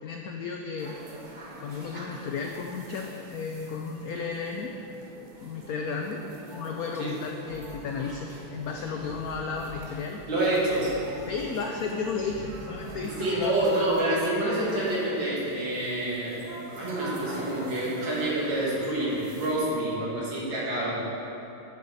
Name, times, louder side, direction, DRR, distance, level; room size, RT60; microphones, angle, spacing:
voice 1, 0.0-1.0 1.6-4.7 5.4-6.2 6.5-10.2 11.3-13.5, left 5 dB, 75° left, 3 dB, 0.8 m, -33 dB
sound 1, 0.8-19.6, right 1 dB, 40° right, 0.7 m, -45 dB
sound 2, 7.5-13.9, left 1 dB, 20° left, 1.7 m, -45 dB
voice 2, 10.3-10.9 13.2-16.4 16.8-21.0, right 1 dB, 70° right, -7 dB, 2.8 m, -27 dB
10.5 x 7.0 x 4.1 m, 2.9 s
omnidirectional pair, 2.1 m